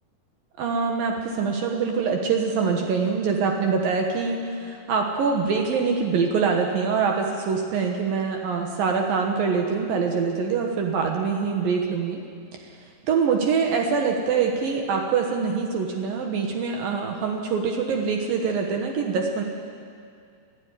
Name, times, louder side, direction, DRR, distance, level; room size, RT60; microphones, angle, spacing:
voice 1, 0.6-12.2 13.1-19.4, right 5 dB, 65° right, 2 dB, 2.7 m, -24 dB
22.5 x 13.0 x 9.7 m, 2.3 s
omnidirectional pair, 4.8 m